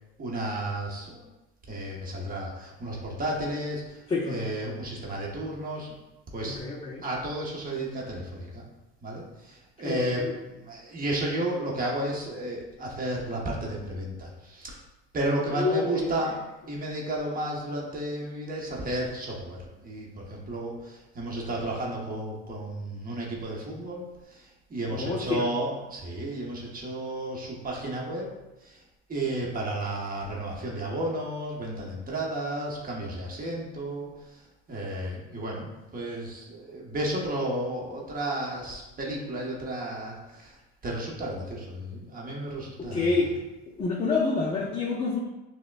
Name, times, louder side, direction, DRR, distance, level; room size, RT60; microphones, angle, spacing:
voice 1, 0.2-1.3 1.7-5.9 6.3-6.6 7.0-8.6 9.0-10.2 10.6-14.8 15.1-16.4 16.7-24.0 24.3-28.3 28.6-28.8 29.1-34.1 34.7-40.5 40.8-43.1, right 1 dB, 25° right, -3 dB, 1.0 m, -32 dB
voice 2, 4.1-4.5 6.5-7.0 9.8-10.3 15.6-16.1 24.9-25.4 42.8-43.4 43.8-45.2, left 4 dB, 20° left, -3 dB, 0.4 m, -28 dB
6.0 x 2.2 x 2.3 m, 1.0 s
supercardioid pair, 95°, 34 cm